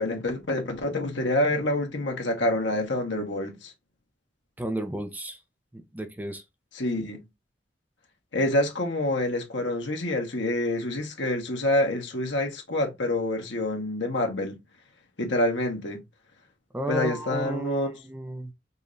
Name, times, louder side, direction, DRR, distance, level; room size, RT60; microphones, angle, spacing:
voice 1, 0.0-3.7 6.7-7.2 8.3-14.6 15.2-16.0 16.9-17.9, left 1 dB, 80° left, 1.4 m, -27 dB
voice 2, 4.6-5.4 5.7-6.4 16.7-18.5, right 1 dB, 10° right, 0.6 m, -33 dB
5.4 x 2.6 x 3.2 m
head